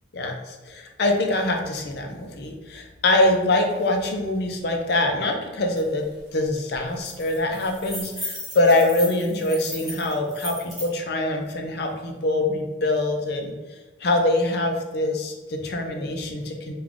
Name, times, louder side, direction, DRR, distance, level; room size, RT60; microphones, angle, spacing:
voice 1, 0.1-6.1 6.3-13.5 14.0-16.7, left 2 dB, 55° left, 2 dB, 0.5 m, -24 dB
sound 1, 5.8-5.9 6.2-6.4 6.7-10.9, equal, ahead, 1.0 m, -36 dB
3.6 x 2.3 x 3.5 m, 1.2 s
head